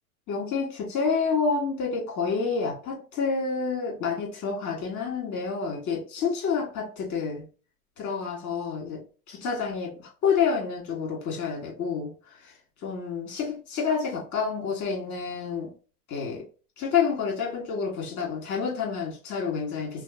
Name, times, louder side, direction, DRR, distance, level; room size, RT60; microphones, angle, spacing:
voice 1, 0.3-7.5 8.0-12.5 12.8-15.7 16.1-16.4 16.8-20.0, left 5 dB, 40° left, 2.4 m, -29 dB
5.6 x 2.6 x 3.0 m
figure-of-eight pair, 85°, 46 cm